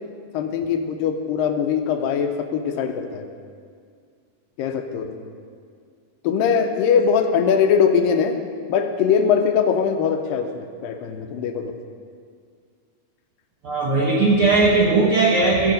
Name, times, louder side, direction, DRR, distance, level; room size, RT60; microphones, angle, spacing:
voice 1, 0.3-3.3 4.6-5.2 6.2-8.4 8.7-11.7, left 7 dB, 80° left, 6 dB, 2.4 m, -21 dB
voice 2, 13.6-15.7, right 3 dB, 65° right, -4 dB, 1.4 m, -18 dB
16.0 x 7.0 x 5.2 m, 2.1 s
omnidirectional pair, 4.0 m